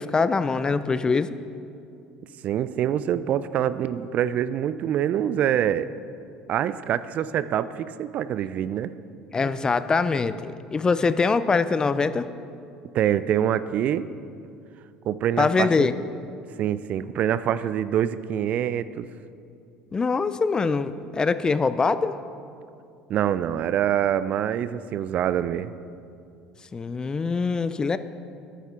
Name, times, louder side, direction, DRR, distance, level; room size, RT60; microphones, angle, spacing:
voice 1, 0.0-1.3 9.3-12.3 15.4-15.9 19.9-22.1 26.7-28.0, left 4 dB, 25° left, 13 dB, 0.4 m, -23 dB
voice 2, 2.4-5.9 6.5-8.9 12.9-14.1 15.1-15.9 16.6-19.1 23.1-25.7, right 10 dB, 55° right, 15 dB, 0.3 m, -25 dB
10.0 x 8.2 x 3.7 m, 2.5 s
hypercardioid pair, 75°, 3 cm